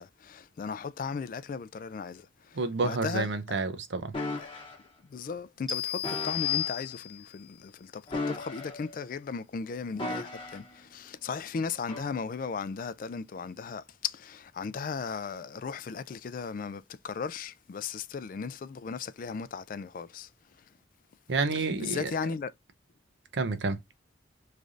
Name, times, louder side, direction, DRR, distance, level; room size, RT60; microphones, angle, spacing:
voice 1, 0.0-3.3 4.4-4.5 5.1-20.3 21.5-22.5, left 5 dB, 45° left, 0.3 m, -36 dB
voice 2, 2.5-4.1 21.3-22.1 23.3-23.8, right 3 dB, 65° right, 0.5 m, -29 dB
sound 1, 4.1-4.8 6.0-6.7 8.1-9.0 10.0-10.7 11.9-12.1, left 2 dB, 25° left, 0.9 m, -36 dB
sound 2, 5.7-7.4, left 11 dB, ahead, 0.8 m, -32 dB
3.2 x 2.4 x 3.8 m
head